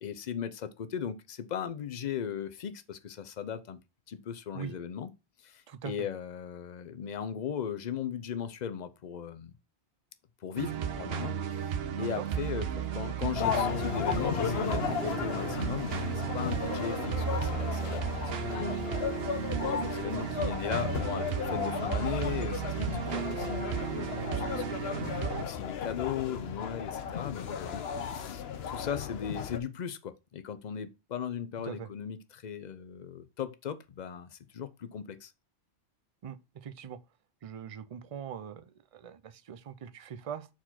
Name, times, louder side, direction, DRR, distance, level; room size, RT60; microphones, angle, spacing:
voice 1, 0.0-3.8 4.1-5.1 5.4-9.5 10.4-11.7 12.0-18.2 18.5-19.0 19.6-35.3, left 8 dB, 45° left, 0.7 m, -38 dB
sound 1, 10.6-25.4, right 8 dB, 65° right, 0.9 m, -34 dB
sound 2, 13.4-29.6, left 8 dB, 65° left, 1.0 m, -35 dB
voice 2, 36.2-37.0 37.4-40.5, right 8 dB, 45° right, 0.4 m, -42 dB
4.6 x 4.4 x 5.7 m
omnidirectional pair, 1.2 m